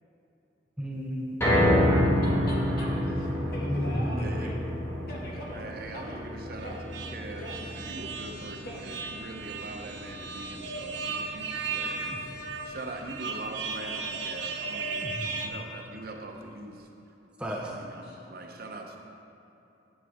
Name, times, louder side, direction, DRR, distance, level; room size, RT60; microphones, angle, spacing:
voice 1, 0.8-2.2 3.6-4.3 11.8-12.2 14.9-15.3 17.4-17.7, equal, 5° right, -2 dB, 0.6 m, -33 dB
sound 1, 1.4-13.6 14.0-14.1 14.6-14.7, equal, 15° left, 2.0 m, -30 dB
voice 2, 2.2-4.6 5.1-6.3 6.6-6.8 7.4-7.6 8.6-9.0 18.1-18.2, equal, 55° left, -5 dB, 2.1 m, -42 dB
voice 3, 4.2-4.5 5.5-6.8 7.1-7.5 7.7-12.2 12.7-16.8 17.5-19.0, right 2 dB, 55° right, 2 dB, 0.9 m, -42 dB
sound 2, 6.6-15.5, right 4 dB, 85° right, 0.9 m, -36 dB
9.4 x 8.9 x 3.6 m, 2.9 s
head